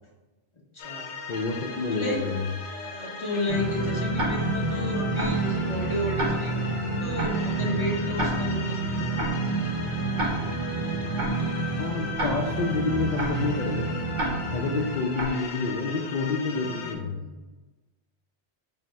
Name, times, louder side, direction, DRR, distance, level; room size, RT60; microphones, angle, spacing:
voice 1, 0.7-1.1 1.9-2.2 2.7-10.2 16.6-17.5, left 1 dB, 25° left, -2 dB, 0.9 m, -33 dB
sound 1, 0.8-16.9, left 4 dB, 75° left, 1.1 m, -38 dB
voice 2, 1.3-2.5 11.8-14.0 14.5-17.2, left 4 dB, 60° left, -1 dB, 0.5 m, -29 dB
sound 2, 3.5-14.9, right 3 dB, 60° right, 0.9 m, -29 dB
Tick-tock, 4.1-4.6 5.2-5.5 6.2-6.6 7.2-7.5 8.2-8.6 9.2-9.5 10.2-10.6 11.2-11.5 12.2-12.6 13.2-13.5 14.1-14.6 15.1-15.5, right 1 dB, 90° right, 1.4 m, -31 dB
5.5 x 2.0 x 4.6 m, 1.2 s
omnidirectional pair, 1.2 m